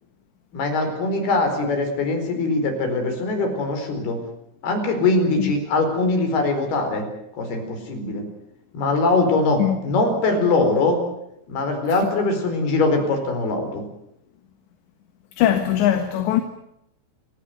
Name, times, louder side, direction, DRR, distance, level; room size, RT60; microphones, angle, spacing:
voice 1, 0.5-4.2 4.6-7.1 7.4-8.3 8.7-11.0 11.5-13.8, left 3 dB, 60° left, 6.3 m, -22 dB
voice 2, 15.4-16.4, left 11 dB, 75° left, 3.7 m, -20 dB
28.0 x 16.0 x 9.3 m
omnidirectional pair, 5.2 m